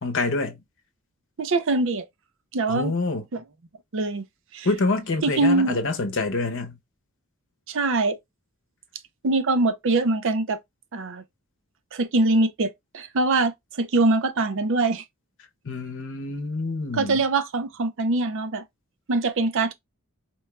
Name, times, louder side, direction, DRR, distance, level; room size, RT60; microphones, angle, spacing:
voice 1, 0.0-0.6 2.7-3.2 4.6-6.8 15.6-17.2, left 3 dB, 55° left, 0.8 m, -26 dB
voice 2, 1.4-2.1 2.5-2.9 3.3-3.4 3.9-4.2 4.5-4.7 5.2-5.8 7.7-8.2 9.2-10.6 10.9-11.2 11.9-15.0 16.9-18.6 19.1-19.7, right 3 dB, 55° right, 0.5 m, -23 dB
4.4 x 2.3 x 3.0 m
head